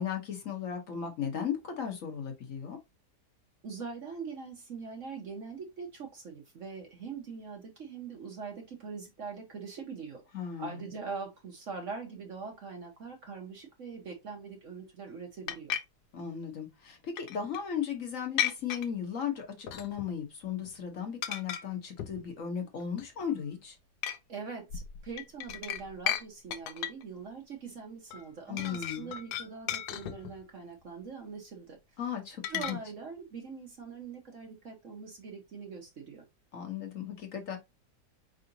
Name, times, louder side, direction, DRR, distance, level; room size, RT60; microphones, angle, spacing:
voice 1, 0.0-2.8 10.3-10.9 16.1-23.8 28.5-29.1 32.0-32.8 36.5-37.6, left 8 dB, 55° left, 1.3 m, -36 dB
voice 2, 3.6-10.2 10.6-15.8 24.3-31.8 32.5-36.3, right 5 dB, 55° right, 1.1 m, -42 dB
sound 1, 15.5-15.8 17.2-17.6 18.4-18.9 19.7-20.2 20.4-20.7 21.2-21.6 22.0-22.3 22.8-23.3 24.0-24.2 24.7-26.2 26.5-27.0 28.1-28.2 28.6-30.4 32.4-32.7, left 10 dB, 70° left, 1.2 m, -34 dB
4.8 x 3.8 x 2.7 m
omnidirectional pair, 1.8 m